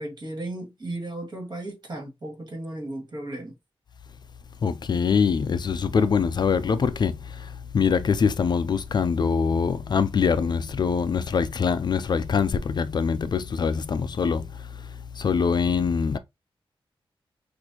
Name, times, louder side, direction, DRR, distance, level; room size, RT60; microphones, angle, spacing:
voice 1, 0.0-3.5, right 1 dB, 45° right, 2.0 m, -35 dB
voice 2, 4.6-14.5 15.2-16.2, left 6 dB, 50° left, 0.3 m, -24 dB
6.2 x 2.6 x 2.8 m
wide cardioid pair, 165°, 10 cm